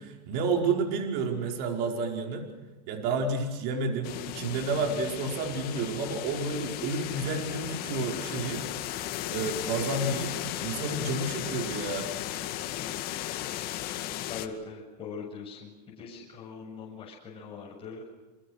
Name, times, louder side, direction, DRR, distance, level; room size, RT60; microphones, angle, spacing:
voice 1, 0.0-2.5 2.9-8.6 9.3-12.1, right 3 dB, 50° right, 2 dB, 5.2 m, -30 dB
sound 1, 4.0-14.5, left 13 dB, 45° left, 2.2 m, -35 dB
voice 2, 14.2-18.0, left 5 dB, 25° left, -3 dB, 7.9 m, -41 dB
30.0 x 25.0 x 6.5 m, 1.1 s
hypercardioid pair, 115°, 21 cm